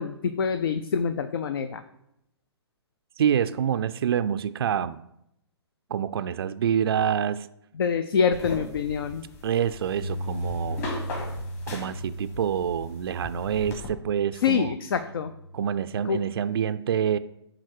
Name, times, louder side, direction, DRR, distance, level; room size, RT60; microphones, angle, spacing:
voice 1, 0.0-1.8 7.8-9.2 14.4-15.3 16.1-16.2, left 6 dB, 55° left, 11 dB, 0.5 m, -26 dB
voice 2, 3.2-5.0 5.9-7.5 9.4-10.9 11.7-14.7 15.5-17.2, right 8 dB, 60° right, 11 dB, 0.4 m, -26 dB
sound 1, 8.3-13.9, left 2 dB, 40° left, 3.0 m, -39 dB
Bass guitar, 10.0-16.3, equal, 80° left, 1.2 m, -37 dB
10.5 x 3.9 x 6.4 m, 0.80 s
figure-of-eight pair, 125°, 14 cm